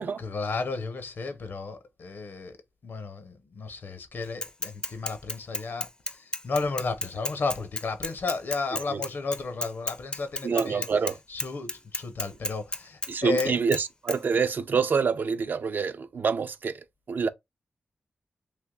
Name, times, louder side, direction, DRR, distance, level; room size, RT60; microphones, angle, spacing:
voice 1, 0.2-2.6 2.8-10.9 11.3-13.5, left 3 dB, 70° left, 0.7 m, -33 dB
Bicycle / Mechanisms, 4.4-11.1 11.4-13.1 13.4-13.8 14.1-14.2, left 2 dB, 25° left, 0.4 m, -32 dB
voice 2, 10.4-11.2 13.1-16.7 17.1-17.3, right 5 dB, 55° right, 0.4 m, -26 dB
3.3 x 2.9 x 2.3 m
wide cardioid pair, 100°, 4 cm